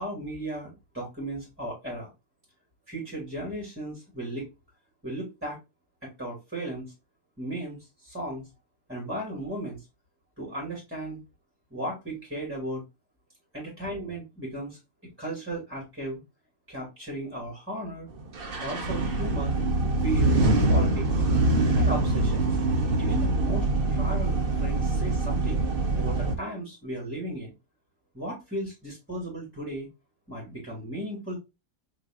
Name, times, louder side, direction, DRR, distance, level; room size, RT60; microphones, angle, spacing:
voice 1, 0.0-2.1 2.9-4.5 5.0-5.6 6.0-6.9 7.4-8.5 8.9-9.8 10.4-11.2 11.7-12.8 13.5-14.8 15.2-16.2 16.7-18.1 18.6-19.5 20.0-21.1 21.7-22.5 23.0-25.6 26.0-27.5 28.1-29.9 30.3-31.4, right 1 dB, 5° right, -2 dB, 2.0 m, -35 dB
sound 1, 18.3-26.3, right 2 dB, 40° right, 1.1 m, -24 dB
5.3 x 3.9 x 2.4 m, 0.24 s
omnidirectional pair, 1.7 m